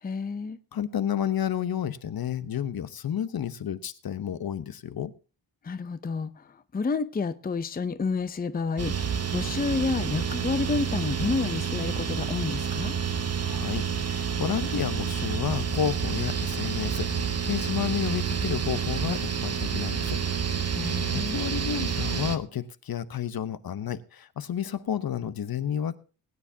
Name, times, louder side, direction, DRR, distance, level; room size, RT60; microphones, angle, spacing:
voice 1, 0.0-0.6 5.6-12.9 20.7-21.4, left 4 dB, 25° left, 0.6 m, -30 dB
voice 2, 0.7-5.1 13.4-20.2 20.6-26.0, left 9 dB, 60° left, 0.9 m, -31 dB
sound 1, 8.8-22.4, right 7 dB, 40° right, 1.0 m, -29 dB
20.5 x 9.7 x 2.7 m
wide cardioid pair, 145°, 40 cm